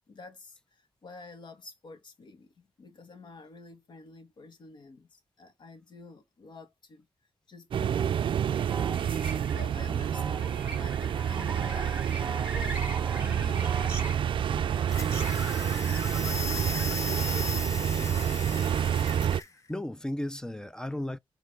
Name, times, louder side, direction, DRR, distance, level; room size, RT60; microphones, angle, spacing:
voice 1, 0.0-7.1 7.5-8.6 9.3-12.1 12.5-12.8 13.2-18.2, left 4 dB, 55° left, 1.2 m, -49 dB
sound 1, 7.7-19.4, right 9 dB, 65° right, 0.4 m, -28 dB
sound 2, 8.4-17.1, right 2 dB, 15° right, 2.5 m, -41 dB
sound 3, 14.9-19.5, left 4 dB, 35° left, 0.9 m, -37 dB
voice 2, 19.7-21.2, left 1 dB, 5° left, 0.3 m, -35 dB
7.7 x 2.6 x 5.0 m
wide cardioid pair, 135°, 9 cm